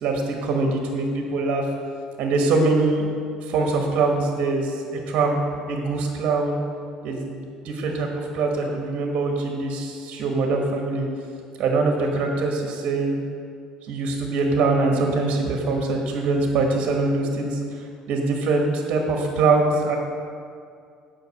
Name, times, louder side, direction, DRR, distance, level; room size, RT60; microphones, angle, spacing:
voice 1, 0.0-1.7 2.2-3.1 3.4-5.4 5.7-6.6 7.0-11.1 11.6-13.2 13.9-20.0, right 3 dB, 60° right, 1 dB, 1.4 m, -23 dB
7.9 x 5.8 x 7.1 m, 2.3 s
supercardioid pair, 90°, 2 cm